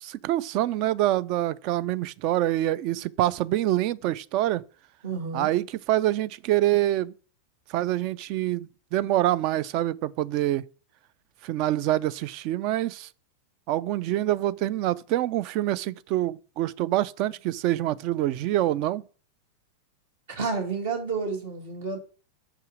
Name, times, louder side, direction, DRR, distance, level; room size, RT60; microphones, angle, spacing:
voice 1, 0.0-4.6 5.3-7.1 7.7-10.6 11.4-13.1 13.7-19.0, right 14 dB, 40° right, 0.3 m, -26 dB
voice 2, 5.0-5.5 20.3-22.0, right 4 dB, 55° right, 2.0 m, -30 dB
6.0 x 5.5 x 5.0 m
figure-of-eight pair, 90°, 0 cm